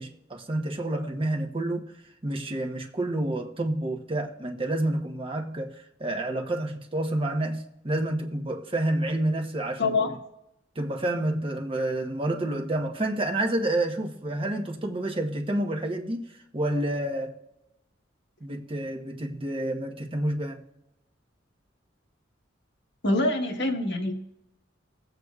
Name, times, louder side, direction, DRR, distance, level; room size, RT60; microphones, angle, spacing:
voice 1, 0.0-1.9 2.2-9.9 10.8-16.3 16.5-17.4 18.4-20.6, right 1 dB, 30° right, 1.0 m, -29 dB
voice 2, 9.8-10.1 23.0-24.1, left 2 dB, 65° left, 1.4 m, -25 dB
20.5 x 8.0 x 2.4 m
head